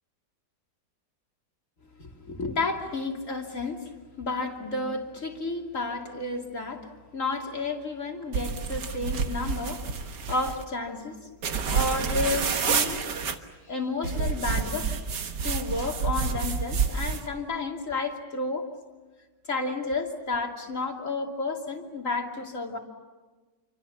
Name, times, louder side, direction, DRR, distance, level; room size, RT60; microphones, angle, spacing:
voice 1, 2.0-11.3 11.7-13.1 13.7-14.9 15.4-18.7 19.5-22.8, left 3 dB, 45° left, 1 dB, 3.2 m, -31 dB
sound 1, 8.3-10.6 11.4-13.3 14.0-17.3, right 5 dB, 75° right, 2.0 m, -29 dB
28.5 x 25.0 x 7.3 m, 1.3 s
omnidirectional pair, 1.9 m